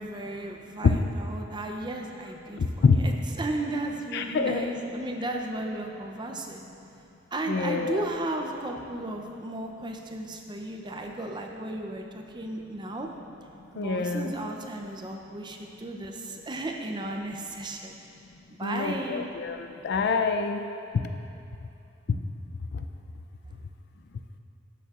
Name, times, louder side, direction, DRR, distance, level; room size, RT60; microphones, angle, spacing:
voice 1, 0.0-6.7 7.3-13.1 13.7-18.0 18.5-19.4, right 2 dB, 25° right, 2 dB, 0.5 m, -35 dB
voice 2, 2.6-3.0 4.1-4.7 7.5-8.0 13.8-14.3 18.6-20.7 20.9-21.1 22.7-22.8, left 4 dB, 55° left, 6 dB, 0.4 m, -26 dB
12.5 x 6.9 x 2.4 m, 2.7 s
head